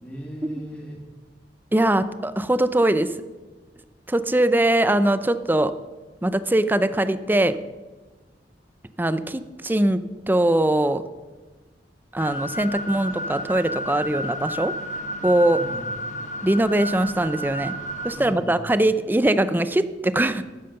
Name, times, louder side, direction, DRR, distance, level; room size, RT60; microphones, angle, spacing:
voice 1, 0.0-1.0 15.5-15.9 18.2-18.6 20.4-20.5, equal, 10° left, -4 dB, 1.9 m, -38 dB
voice 2, 1.7-3.1 4.1-5.7 6.2-7.6 9.0-10.0 10.3-11.0 12.1-14.7 15.2-15.6 16.4-17.8 18.0-20.4, right 1 dB, 10° right, 12 dB, 0.5 m, -21 dB
sound 1, 12.2-18.3, right 1 dB, 45° left, 1.1 m, -32 dB
12.0 x 9.0 x 5.8 m, 1.3 s
head